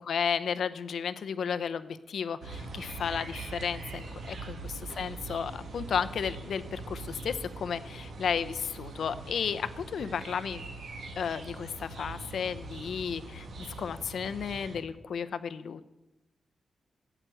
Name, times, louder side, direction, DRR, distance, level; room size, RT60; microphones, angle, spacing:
voice 1, 0.0-10.6 11.2-15.9, left 7 dB, 75° left, 12 dB, 0.7 m, -33 dB
sound 1, 2.4-14.8, right 3 dB, 80° right, 2.3 m, -42 dB
14.0 x 9.0 x 7.8 m, 1.0 s
wide cardioid pair, 120°, 0 cm